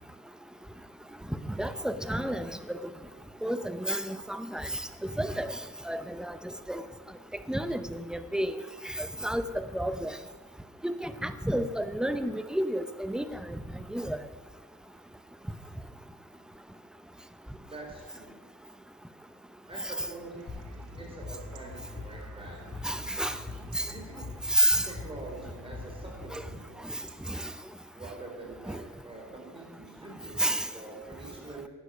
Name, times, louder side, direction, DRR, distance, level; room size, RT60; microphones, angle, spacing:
voice 1, 1.6-2.8 3.4-4.7 5.2-5.6 5.9-6.3 6.7-6.8 7.5-8.5 9.0-9.4 9.7-10.1 10.8-13.3 13.9-14.2 22.8-23.3 23.7-23.9 24.5-24.8 26.3-26.4 27.3-27.4 28.7-28.8 30.4-30.7, equal, ahead, 11 dB, 0.7 m, -30 dB
voice 2, 17.7-18.4 19.7-20.6 21.0-23.0 23.9-24.3 24.8-26.5 27.9-31.7, right 2 dB, 20° right, -1 dB, 4.1 m, -45 dB
Chatter / Livestock farm animals working animals / Chirp tweet, 20.3-27.5, right 7 dB, 80° right, 1.4 m, -55 dB
sound 1, 20.5-27.1, left 2 dB, 30° left, 3.0 m, -43 dB
12.0 x 9.1 x 6.3 m, 1.5 s
cardioid pair, 90°, 30 cm